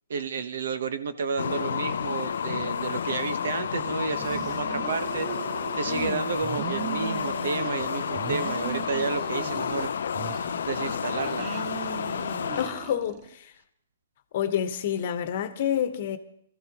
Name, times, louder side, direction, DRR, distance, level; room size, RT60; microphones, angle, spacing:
voice 1, 0.1-9.9 10.6-11.6, right 5 dB, 70° right, 1.0 m, -31 dB
sound 1, 1.4-12.7, left 7 dB, 70° left, 0.5 m, -31 dB
sound 2, 4.1-6.1 6.4-9.9 10.1-13.3, right 14 dB, 30° right, 0.5 m, -39 dB
voice 2, 5.9-6.2 12.6-13.5 14.3-16.2, left 9 dB, 50° left, 1.1 m, -28 dB
21.0 x 14.0 x 3.0 m
hypercardioid pair, 150°, 0 cm